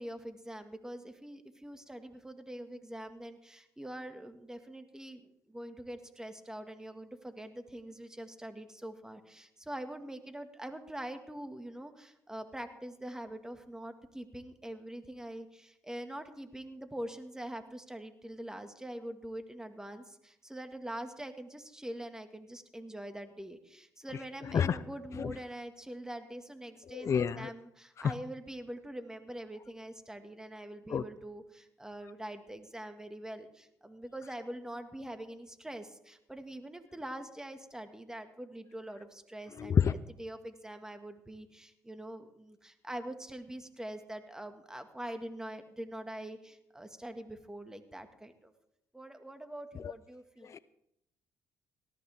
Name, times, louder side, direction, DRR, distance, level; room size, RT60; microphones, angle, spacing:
voice 1, 0.0-39.8 40.2-48.5 48.9-50.6, right 1 dB, 10° right, 7 dB, 1.9 m, -44 dB
voice 2, 24.5-24.8 25.2-25.3 26.9-27.5 28.0-28.1 30.9-31.0 39.6-39.9 49.8-49.9 50.4-50.6, left 7 dB, 45° left, 16 dB, 0.5 m, -29 dB
18.5 x 13.5 x 3.6 m, 0.80 s
supercardioid pair, 70°, 7 cm